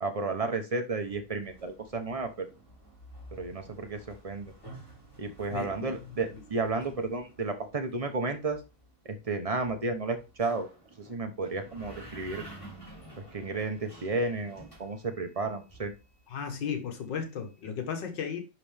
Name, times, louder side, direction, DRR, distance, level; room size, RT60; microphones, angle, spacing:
voice 1, 0.0-2.5 3.4-4.5 5.2-8.6 9.0-10.7 11.0-12.4 13.3-15.9, right 3 dB, 30° right, 0.6 m, -32 dB
sound 1, 1.0-16.5, right 1 dB, 15° left, 2.8 m, -51 dB
voice 2, 5.5-6.0 16.3-18.4, left 7 dB, 80° left, 2.0 m, -35 dB
10.5 x 4.2 x 3.4 m
omnidirectional pair, 1.9 m